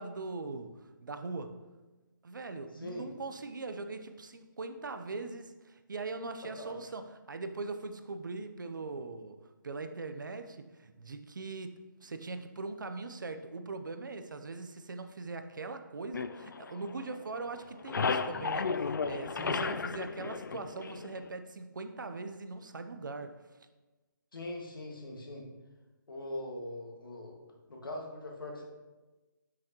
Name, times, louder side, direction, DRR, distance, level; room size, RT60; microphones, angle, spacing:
voice 1, 0.0-1.6 2.2-9.4 9.6-23.4, right 3 dB, 70° right, 8 dB, 0.7 m, -41 dB
voice 2, 2.7-3.0 6.6-6.7 24.3-25.4 26.1-27.4 27.7-28.6, left 1 dB, 85° left, 0 dB, 1.8 m, -41 dB
sound 1, 16.1-17.3 17.6-21.3, left 5 dB, 65° left, 0.4 m, -34 dB
9.8 x 6.3 x 3.0 m, 1.2 s
hypercardioid pair, 180°, 11 cm